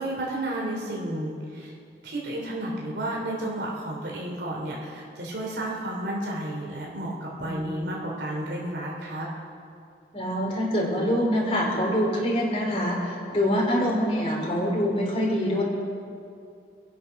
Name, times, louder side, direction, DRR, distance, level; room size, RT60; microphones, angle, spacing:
voice 1, 0.0-1.7 2.0-9.3, right 1 dB, 75° right, -3 dB, 3.0 m, -32 dB
voice 2, 7.4-7.7 10.1-15.6, equal, 35° left, -3 dB, 3.1 m, -25 dB
27.0 x 9.1 x 5.8 m, 2.4 s
head